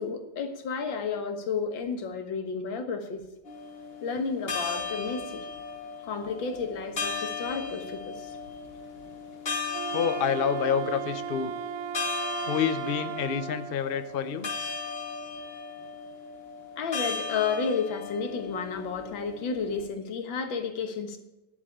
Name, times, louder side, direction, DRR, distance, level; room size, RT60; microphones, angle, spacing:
voice 1, 0.0-3.2 4.0-5.5 6.0-8.4 16.8-21.2, left 5 dB, 75° left, 7 dB, 2.1 m, -32 dB
sound 1, 3.5-19.9, left 5 dB, 30° left, 1.9 m, -37 dB
Wind instrument woodwind instrument, 9.7-13.8, right 11 dB, 70° right, 0.9 m, -36 dB
voice 2, 9.9-11.5 12.4-14.5, left 7 dB, 60° left, 11 dB, 0.5 m, -28 dB
10.0 x 7.7 x 8.5 m, 0.99 s
omnidirectional pair, 2.1 m